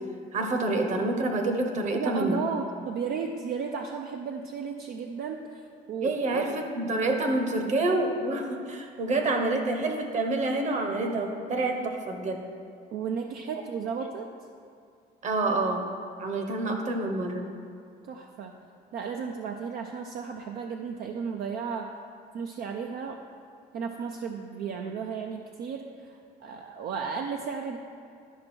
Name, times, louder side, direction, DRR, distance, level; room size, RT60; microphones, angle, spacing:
voice 1, 0.3-2.4 6.0-12.4 15.2-15.9 16.2-17.5, right 2 dB, 45° right, 4 dB, 1.2 m, -27 dB
voice 2, 1.9-6.6 12.9-14.3 18.1-18.6 18.9-21.9 22.3-23.2 23.7-27.8, right 6 dB, 65° right, 3 dB, 0.6 m, -34 dB
12.0 x 5.2 x 4.5 m, 2.4 s
cardioid pair, 110°, 17 cm